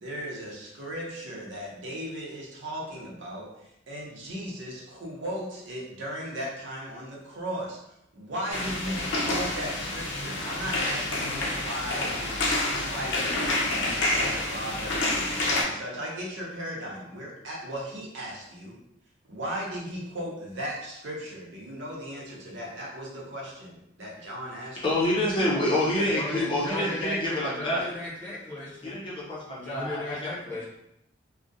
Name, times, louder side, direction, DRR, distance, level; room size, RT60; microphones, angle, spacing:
voice 1, 0.0-7.8 8.1-12.5 12.8-18.7 19.3-24.8, equal, 80° right, -3 dB, 0.7 m, -37 dB
sound 1, 8.5-15.6, left 2 dB, 75° left, 0.5 m, -28 dB
voice 2, 24.8-27.9 28.8-30.3, left 1 dB, 25° left, -6 dB, 0.5 m, -27 dB
voice 3, 25.9-29.0 29.6-30.6, left 1 dB, 10° left, -10 dB, 0.9 m, -36 dB
2.4 x 2.1 x 2.6 m, 0.80 s
head